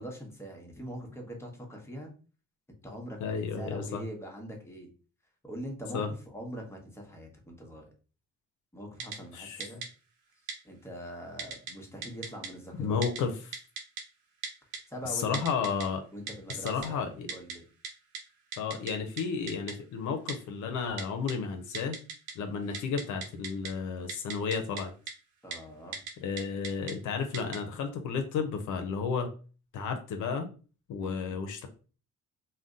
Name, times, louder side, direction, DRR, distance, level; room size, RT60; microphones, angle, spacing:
voice 1, 0.0-2.1 2.8-4.9 5.4-7.9 8.7-9.9 10.6-13.0 14.9-15.4 16.1-17.6 25.4-26.0 31.0-31.4, equal, 10° left, 0 dB, 1.0 m, -43 dB
voice 2, 3.2-4.0 5.9-6.1 9.3-9.6 12.8-13.5 15.0-16.0 16.5-17.3 18.6-22.0 22.3-24.9 26.2-29.3 29.7-30.5 30.9-31.7, left 5 dB, 75° left, 5 dB, 0.6 m, -32 dB
Typing, 9.0-9.2 9.6-9.9 10.5-10.6 11.4-11.7 12.0-12.5 13.0-13.2 13.5-14.0 14.4-14.8 15.3-15.8 16.3-16.9 17.3-17.5 17.8-17.9 18.1-18.2 18.5-18.9 19.2-19.3 19.5-19.7 20.3-20.4 21.0-21.3 21.7-22.3 22.6-23.7 24.1-24.8 25.1-25.2 25.5-25.6 25.9-26.1 26.4-26.9 27.3-27.6, right 6 dB, 85° right, 0.7 m, -37 dB
2.5 x 2.1 x 3.7 m, 0.37 s
cardioid pair, 90°, 30 cm